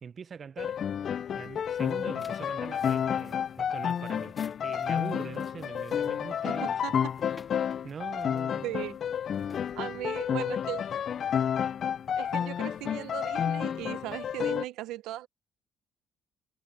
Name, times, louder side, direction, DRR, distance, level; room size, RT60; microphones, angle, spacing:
voice 1, 0.0-0.8 1.3-4.3 4.6-6.7 7.8-8.7, right 6 dB, 45° right, 0.8 m, -42 dB
sound 1, 0.6-14.6, left 8 dB, 55° left, 0.4 m, -30 dB
sound 2, 1.3-10.5, left 3 dB, 25° left, 3.2 m, -57 dB
voice 2, 8.6-9.0 9.8-10.8 12.2-15.3, right 15 dB, 85° right, 0.9 m, -37 dB
cardioid pair, 80°, 0 cm